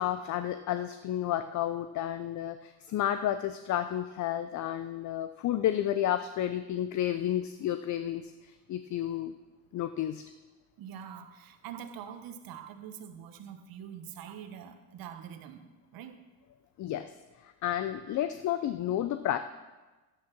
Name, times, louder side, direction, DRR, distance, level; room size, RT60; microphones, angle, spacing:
voice 1, 0.0-9.3 9.7-10.2 16.8-17.1 17.6-19.4, left 11 dB, 50° left, 10 dB, 0.6 m, -31 dB
voice 2, 10.8-15.6 15.9-16.2, right 8 dB, 60° right, 8 dB, 1.3 m, -44 dB
10.5 x 10.0 x 6.0 m, 1.2 s
cardioid pair, 105°, 39 cm